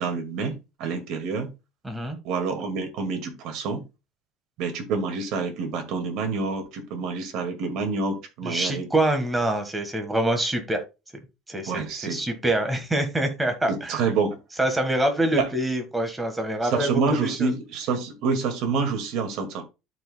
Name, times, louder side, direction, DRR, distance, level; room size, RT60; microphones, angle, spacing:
voice 1, 0.0-1.5 2.2-3.8 4.6-8.9 11.7-12.2 13.7-14.4 15.4-15.5 16.7-19.6, right 4 dB, 60° right, 2.0 m, -27 dB
voice 2, 1.8-2.2 8.4-10.8 11.5-14.0 14.6-17.5, right 1 dB, 10° right, 1.5 m, -25 dB
13.0 x 4.8 x 2.3 m
cardioid pair, 145°, 0 cm